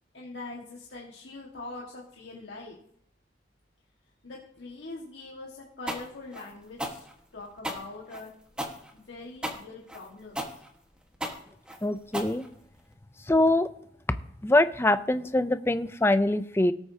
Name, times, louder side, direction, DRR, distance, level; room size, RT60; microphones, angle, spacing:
voice 1, 0.1-2.8 4.2-7.0 7.3-8.3 8.9-10.4, left 3 dB, 90° left, -3 dB, 1.8 m, -43 dB
sound 1, 5.9-12.9, equal, 5° right, 1.5 m, -36 dB
voice 2, 11.8-12.4 13.3-13.7 14.4-16.7, left 1 dB, 15° left, 12 dB, 0.5 m, -23 dB
18.5 x 8.0 x 2.8 m, 0.69 s
head